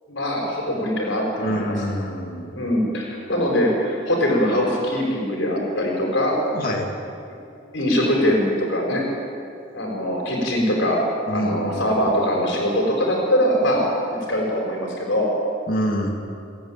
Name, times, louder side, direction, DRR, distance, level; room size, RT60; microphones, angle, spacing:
voice 1, 0.1-1.8 2.5-6.4 7.7-9.1 9.7-11.0 11.3-13.8 14.1-15.3, equal, 70° left, -1 dB, 5.2 m, -22 dB
voice 2, 1.4-2.5 6.5-6.9 11.3-12.1 15.7-16.1, equal, 45° left, 0 dB, 2.5 m, -26 dB
30.0 x 10.5 x 9.1 m, 2.6 s
head